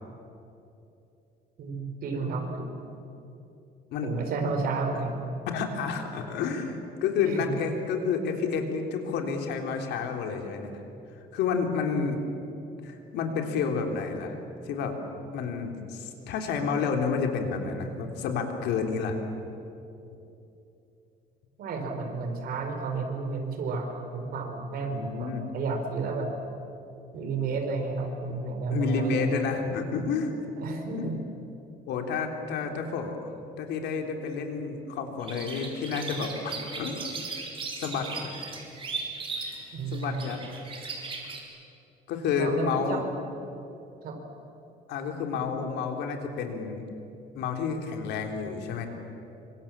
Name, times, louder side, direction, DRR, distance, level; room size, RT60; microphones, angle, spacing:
voice 1, 1.6-2.8 4.0-5.3 7.2-7.5 21.6-26.3 27.1-29.3 30.6-31.2 39.7-40.2 42.3-43.0 44.0-44.2, right 4 dB, 60° right, 4 dB, 4.4 m, -32 dB
voice 2, 5.5-10.7 11.3-12.2 12.8-14.4 14.7-15.0 15.3-19.2 24.9-25.4 28.7-30.3 31.0-31.1 31.9-37.0 37.8-38.3 39.9-40.4 40.8-40.9 42.1-43.0 44.9-46.8 47.3-48.9, left 5 dB, 80° left, 3 dB, 3.5 m, -30 dB
sound 1, 35.2-41.4, right 4 dB, 30° right, 4.3 m, -37 dB
27.0 x 25.0 x 7.5 m, 2.8 s
cardioid pair, 150°, 17 cm